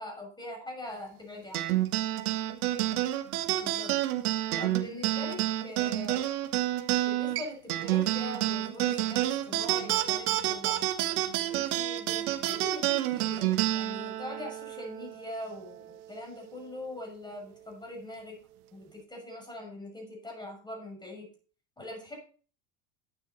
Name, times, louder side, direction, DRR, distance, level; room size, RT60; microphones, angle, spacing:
voice 1, 0.0-1.7 3.5-3.9 4.6-6.3 7.0-10.9 11.5-18.4 18.7-21.3 21.8-22.2, left 1 dB, 10° left, 0 dB, 6.5 m, -42 dB
sound 1, 1.5-16.3, right 14 dB, 80° right, 1.3 m, -29 dB
12.5 x 9.1 x 4.1 m, 0.41 s
supercardioid pair, 110°, 43 cm